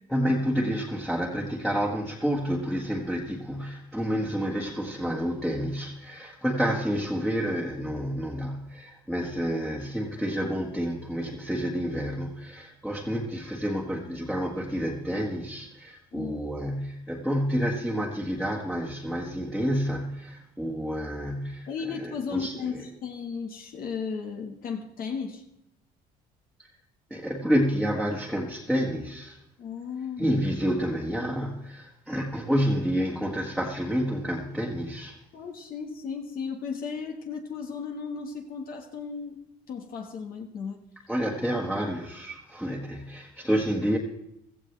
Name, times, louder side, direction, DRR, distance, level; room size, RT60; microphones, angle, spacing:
voice 1, 0.1-21.7 22.0-22.8 26.6-26.7 27.1-29.4 30.2-35.2 41.1-44.0, equal, 5° left, -2 dB, 1.7 m, -29 dB
voice 2, 16.1-16.4 21.7-25.4 29.6-30.3 35.3-39.4 39.7-40.8, left 5 dB, 60° left, 1 dB, 1.7 m, -35 dB
16.5 x 14.0 x 3.4 m, 0.81 s
cardioid pair, 110°, 17 cm